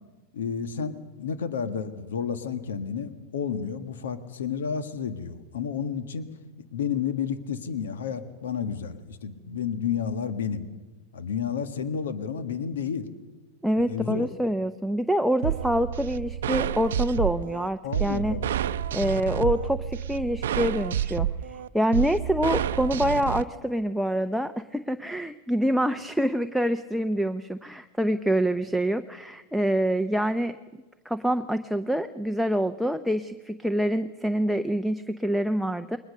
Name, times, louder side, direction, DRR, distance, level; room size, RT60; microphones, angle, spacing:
voice 1, 0.3-6.3 6.7-10.6 11.1-13.1 13.9-14.3 17.8-18.6, left 7 dB, 90° left, 10 dB, 1.5 m, -31 dB
voice 2, 13.6-18.4 18.9-30.6 31.1-36.0, equal, ahead, 7 dB, 0.6 m, -26 dB
sound 1, 15.4-23.4, right 10 dB, 80° right, 0.6 m, -29 dB
21.5 x 20.0 x 6.6 m, 1.2 s
hypercardioid pair, 115°, 0 cm